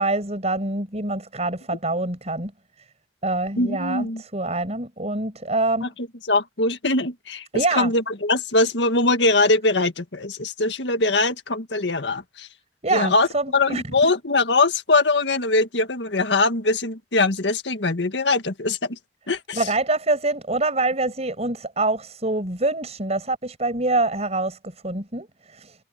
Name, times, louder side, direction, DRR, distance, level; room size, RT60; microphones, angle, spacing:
voice 1, 0.0-2.5 3.2-5.9 7.5-7.9 12.8-13.8 19.5-25.8, right 2 dB, 40° right, 6.6 m, -25 dB
voice 2, 3.6-4.2 5.8-5.9 6.3-12.5 12.9-13.3 13.5-19.0 19.3-19.7, left 2 dB, 80° left, 1.9 m, -22 dB
head